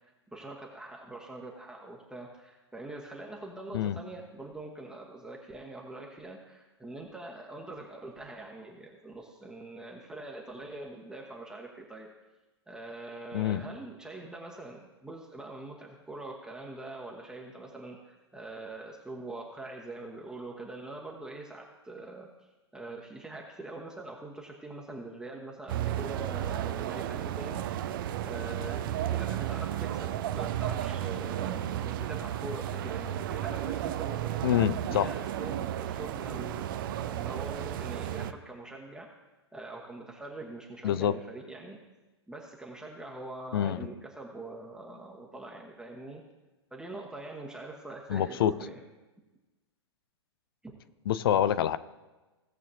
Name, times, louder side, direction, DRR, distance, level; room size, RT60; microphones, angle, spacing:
voice 1, 0.3-12.1 12.7-22.3 22.7-27.7 28.2-34.5 34.9-39.1 39.5-41.8 42.3-46.2 46.7-48.8 50.6-50.7 51.3-51.4, right 2 dB, 5° right, -1 dB, 1.1 m, -43 dB
sound 1, 25.7-38.3, right 11 dB, 50° right, 0.6 m, -33 dB
voice 2, 34.4-35.1 40.8-41.1 43.5-43.8 48.1-48.5 51.1-51.8, left 10 dB, 55° left, 15 dB, 0.6 m, -26 dB
17.0 x 7.3 x 2.8 m, 1.1 s
figure-of-eight pair, 105°, 14 cm